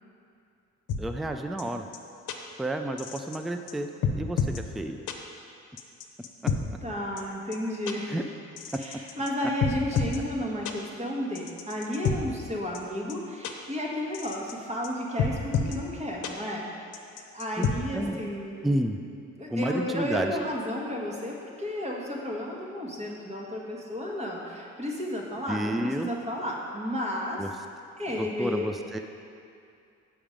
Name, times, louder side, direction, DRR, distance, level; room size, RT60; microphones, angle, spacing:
sound 1, 0.9-1.0 1.6-1.7 1.9-2.0 2.3-2.4 3.0-3.4 3.7-3.8 4.0-4.6 5.1-5.2 5.8-6.6 7.2-7.3 7.5-7.6 7.9-8.0 8.6-9.3 9.6-10.2 10.7-10.8 11.4-12.2 12.7-12.8 13.1-13.2 13.4-13.5 14.1-14.5 14.8-14.9 15.2-15.8 16.2-16.3 16.9-17.7, left 6 dB, 75° left, 0.8 m, -28 dB
voice 1, 1.0-1.8 2.6-5.0 8.1-8.2 17.6-18.2 18.6-19.0 19.5-20.4 25.5-26.1 27.4-27.5 28.2-29.0, right 1 dB, ahead, 6 dB, 0.3 m, -30 dB
voice 2, 6.8-8.2 8.7-16.9 17.2-18.6 19.4-27.5 28.0-28.7, equal, 20° right, -2 dB, 1.5 m, -32 dB
7.2 x 5.9 x 5.0 m, 2.5 s
cardioid pair, 90°, 30 cm